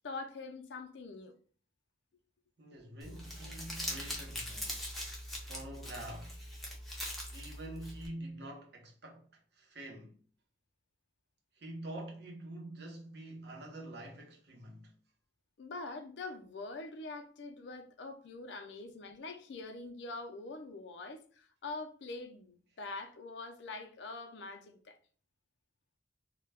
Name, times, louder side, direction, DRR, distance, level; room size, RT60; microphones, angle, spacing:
voice 1, 0.0-1.4 15.6-25.0, left 3 dB, 75° left, 0.4 m, -44 dB
voice 2, 2.6-4.8 5.4-6.4 7.3-10.2 11.5-14.9, right 1 dB, 70° right, 0.7 m, -46 dB
Crumpling crinkling, 3.0-8.1, equal, ahead, 0.5 m, -42 dB
2.2 x 2.1 x 3.3 m
head